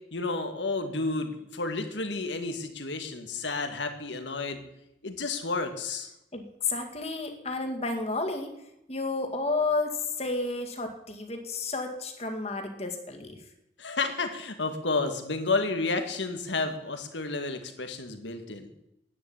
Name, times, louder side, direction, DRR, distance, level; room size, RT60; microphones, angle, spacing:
voice 1, 0.1-4.6 5.0-6.1 13.8-18.7, left 3 dB, 85° left, 7 dB, 2.0 m, -31 dB
voice 2, 6.3-8.5 8.9-9.9 10.2-13.4, left 3 dB, 35° left, 4 dB, 2.1 m, -31 dB
11.0 x 9.7 x 8.9 m, 0.84 s
head